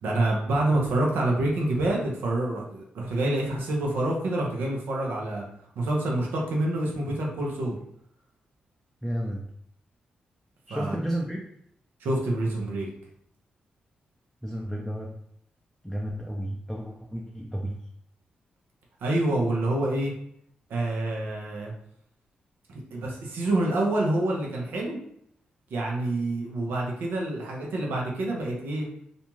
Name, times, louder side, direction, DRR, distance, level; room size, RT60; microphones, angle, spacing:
voice 1, 0.0-5.4 5.8-7.8 10.7-11.0 12.0-12.9 19.0-20.1 20.7-21.7 22.9-25.0 25.7-28.9, right 1 dB, 85° right, -2 dB, 0.7 m, -27 dB
voice 2, 9.0-9.4 10.7-11.4 14.4-15.1 15.8-17.8, equal, ahead, -2 dB, 0.5 m, -32 dB
2.6 x 2.3 x 2.9 m, 0.70 s
cardioid pair, 60°, 3 cm